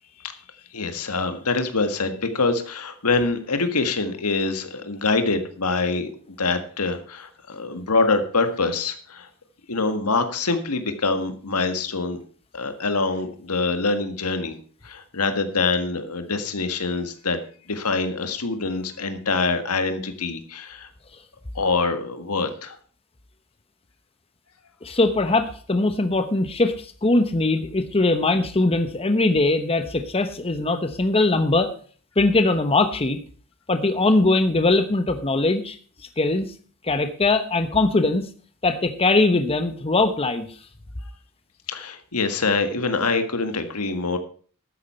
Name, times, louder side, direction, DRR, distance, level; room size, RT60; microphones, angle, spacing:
voice 1, 0.7-6.1 6.4-9.3 9.7-12.2 12.5-14.6 14.8-17.4 17.7-20.9 21.5-22.8 41.7-44.2, left 3 dB, 90° left, 8 dB, 1.7 m, -25 dB
voice 2, 24.8-31.7 32.2-33.2 33.7-35.8 36.2-36.5 36.8-38.2 38.6-40.5, left 2 dB, 25° left, 8 dB, 1.0 m, -21 dB
12.0 x 9.4 x 4.4 m, 0.42 s
head